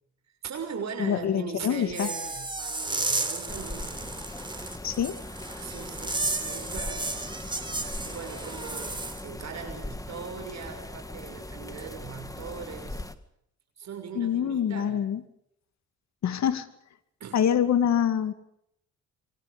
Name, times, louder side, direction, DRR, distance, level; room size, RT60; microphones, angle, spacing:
voice 1, 0.4-4.1 5.6-7.4 8.0-13.0 13.8-15.0 17.2-17.4, right 6 dB, 60° right, 4 dB, 6.4 m, -40 dB
voice 2, 1.0-2.1 4.8-5.2 14.1-15.2 16.2-16.7 17.3-18.3, left 9 dB, 65° left, 11 dB, 2.4 m, -25 dB
sound 1, 1.9-9.2, right 2 dB, 15° right, 4.1 m, -33 dB
sound 2, 3.5-13.2, left 2 dB, 10° left, 1.9 m, -40 dB
28.0 x 24.0 x 5.3 m, 0.73 s
cardioid pair, 90°, 30 cm